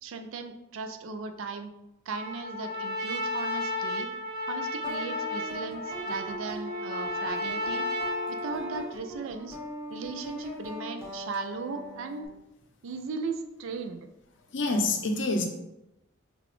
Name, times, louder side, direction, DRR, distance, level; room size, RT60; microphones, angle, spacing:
voice 1, 0.0-1.7 2.1-4.1 4.5-7.9 8.3-9.6 9.9-12.3 12.8-14.1, right 4 dB, 80° right, 7 dB, 0.4 m, -37 dB
Trumpet, 2.1-8.9, left 1 dB, 55° right, 1.1 m, -33 dB
sound 1, 4.8-12.3, left 1 dB, 15° right, 0.7 m, -40 dB
voice 2, 14.5-15.4, left 2 dB, 65° left, 4 dB, 0.5 m, -26 dB
3.8 x 2.4 x 3.1 m, 0.91 s
head